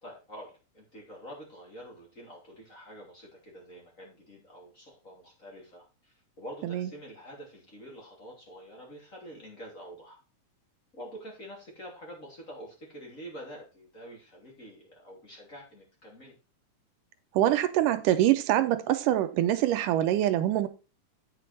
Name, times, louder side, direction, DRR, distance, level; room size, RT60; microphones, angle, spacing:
voice 1, 0.0-10.2 10.9-16.4, equal, 25° left, 3.1 m, -47 dB
voice 2, 17.4-20.7, right 13 dB, 85° right, 2.3 m, -24 dB
8.4 x 6.6 x 4.5 m
omnidirectional pair, 3.8 m